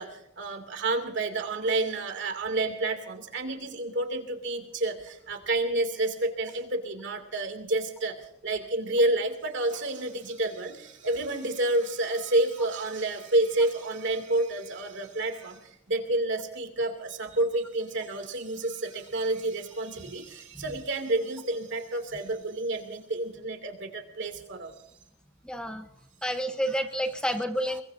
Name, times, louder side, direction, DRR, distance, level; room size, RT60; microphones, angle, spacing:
voice 1, 0.0-24.7, right 2 dB, 65° right, 6 dB, 2.5 m, -29 dB
voice 2, 25.4-25.9 26.2-27.8, equal, 5° left, 6 dB, 0.9 m, -29 dB
23.0 x 22.0 x 2.6 m, 0.77 s
head